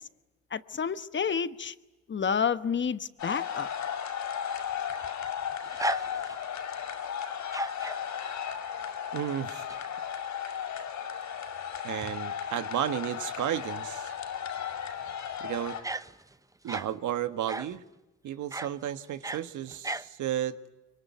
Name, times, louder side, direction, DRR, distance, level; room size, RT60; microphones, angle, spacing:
voice 1, 0.5-1.7 2.1-3.7, left 6 dB, 40° left, 12 dB, 1.2 m, -29 dB
sound 1, 3.2-15.8, left 8 dB, 70° left, 5.9 m, -35 dB
sound 2, 4.7-6.6 7.4-8.0 9.3-9.8 10.2-10.3 11.7-11.8 12.0-12.2 15.0-15.3 15.8-16.9 17.5-17.8 18.5-18.8 19.1-20.1, right 2 dB, 10° right, 0.8 m, -36 dB
voice 2, 9.1-9.6 11.8-14.1 15.4-15.8 16.6-17.8 18.2-20.6, right 11 dB, 75° right, 11 dB, 1.5 m, -33 dB
24.5 x 24.0 x 9.5 m, 1.1 s
cardioid pair, 90°, 30 cm